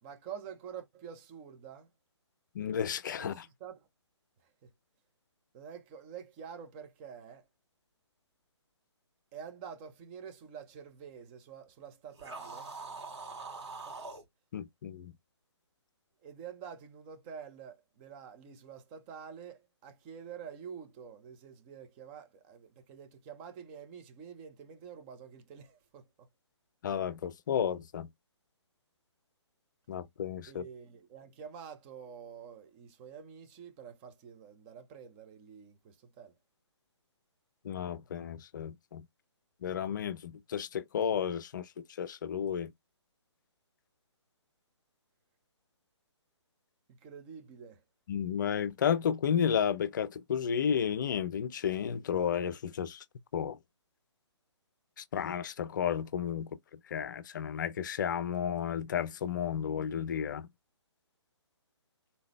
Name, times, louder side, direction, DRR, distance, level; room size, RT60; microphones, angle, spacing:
voice 1, 0.0-1.9 3.2-3.8 4.4-4.5 5.5-7.5 9.3-12.7 13.5-14.0 16.2-26.1 30.5-36.3 46.9-47.8, right 7 dB, 20° right, 0.9 m, -48 dB
voice 2, 2.5-3.4 14.5-15.1 26.8-28.1 29.9-30.6 37.6-39.0 39.6-42.7 48.1-53.0 53.3-53.6 55.0-60.5, left 8 dB, 40° left, 0.6 m, -32 dB
sound 1, 12.1-14.2, right 4 dB, 65° right, 2.9 m, -43 dB
4.2 x 3.8 x 3.2 m
figure-of-eight pair, 140°, 15 cm